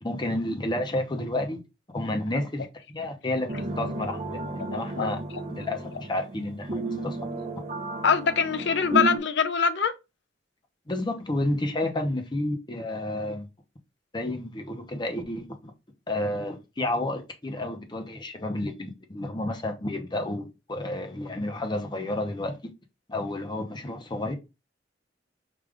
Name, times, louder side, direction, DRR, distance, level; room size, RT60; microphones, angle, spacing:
voice 1, 0.0-1.6 1.9-3.5 3.8-5.2 5.5-7.3 10.9-13.5 14.1-15.7 16.1-22.6 23.1-24.3, left 1 dB, 25° left, 0.8 m, -31 dB
sound 1, 3.5-9.2, right 2 dB, 35° right, 0.7 m, -33 dB
voice 2, 4.6-5.1 8.0-9.9, left 6 dB, 65° left, 0.5 m, -24 dB
5.1 x 2.4 x 3.4 m
head